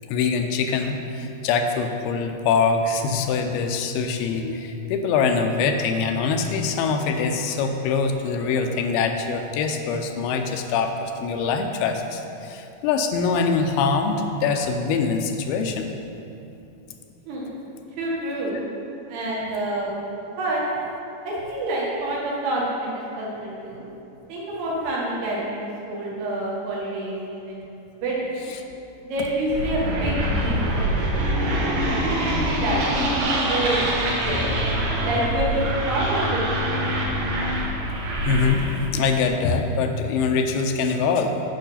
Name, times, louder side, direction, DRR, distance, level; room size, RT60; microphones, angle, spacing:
voice 1, 0.1-16.0 38.3-38.6 38.9-41.4, left 5 dB, 85° left, 5 dB, 2.6 m, -23 dB
voice 2, 18.0-18.6 19.1-19.9 20.4-20.6 21.2-23.8 24.3-28.4 29.0-32.0 32.3-33.9 34.2-34.5 35.0-36.8, right 1 dB, 80° right, -6 dB, 4.0 m, -28 dB
sound 1, 29.5-38.9, right 1 dB, 65° right, 2.7 m, -24 dB
9.2 x 6.3 x 5.7 m, 2.8 s
omnidirectional pair, 4.5 m